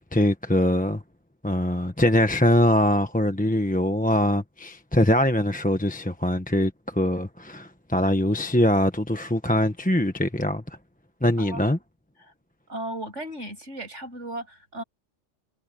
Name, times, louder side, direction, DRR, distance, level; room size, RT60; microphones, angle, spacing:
voice 1, 0.1-1.0 1.4-10.6 11.2-11.8, left 1 dB, 5° left, 1.1 m, -22 dB
voice 2, 12.7-14.8, right 1 dB, 75° right, 8.4 m, -35 dB
omnidirectional pair, 1.2 m